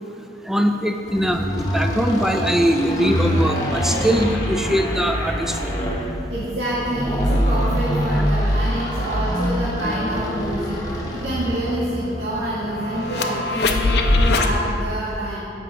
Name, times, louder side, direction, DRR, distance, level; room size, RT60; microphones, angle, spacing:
voice 1, 0.5-5.3 5.6-5.7, equal, ahead, 5 dB, 0.4 m, -21 dB
sound 1, 1.1-11.9, equal, 20° left, 1.0 m, -24 dB
voice 2, 6.3-15.4, right 1 dB, 85° right, -9 dB, 1.5 m, -27 dB
sound 2, 9.5-14.5, left 2 dB, 70° left, 0.6 m, -24 dB
14.5 x 5.3 x 3.3 m, 2.7 s
head